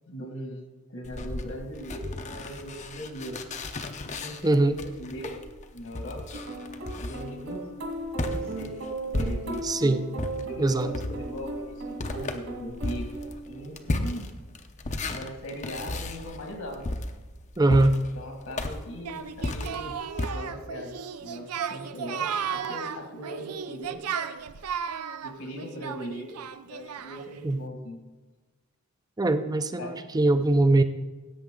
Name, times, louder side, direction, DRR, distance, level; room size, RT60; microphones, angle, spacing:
voice 1, 0.1-0.6 0.9-3.4 4.0-5.4 5.7-6.4 6.9-7.7 8.2-8.7 9.2-9.7 10.5-14.3 15.1-16.9 18.1-24.0 25.2-26.4 26.6-28.0 29.8-30.0, equal, 75° left, 2 dB, 2.1 m, -39 dB
sound 1, 1.0-9.8 10.1-20.3, left 2 dB, 30° left, 0.6 m, -35 dB
voice 2, 4.4-4.7 9.6-10.0 10.6-10.9 17.6-18.0 27.4-27.6 29.2-30.8, right 2 dB, 15° right, 10 dB, 0.4 m, -22 dB
sound 2, 6.3-13.8, right 2 dB, 65° right, 2.1 m, -37 dB
Singing, 19.0-27.4, right 7 dB, 90° right, 0.5 m, -35 dB
16.5 x 8.3 x 3.8 m, 1.3 s
head